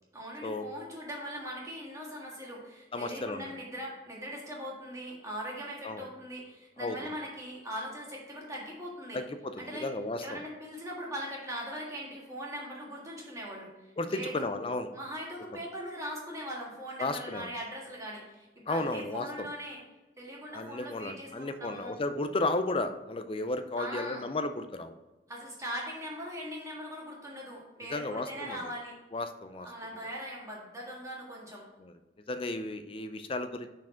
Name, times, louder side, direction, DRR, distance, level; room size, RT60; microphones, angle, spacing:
voice 1, 0.1-9.2 9.6-9.9 10.2-14.5 14.9-19.8 20.2-21.9 23.8-24.2 25.3-28.9 29.6-31.6, equal, 20° right, -3 dB, 1.6 m, -40 dB
voice 2, 2.9-3.5 5.8-6.0 6.8-7.0 9.1-10.4 14.0-14.9 17.0-17.5 18.7-19.5 20.5-24.9 27.9-28.6 29.1-29.7 31.8-31.9 32.3-33.7, left 2 dB, 30° left, 10 dB, 0.4 m, -34 dB
6.0 x 4.6 x 4.4 m, 1.1 s
head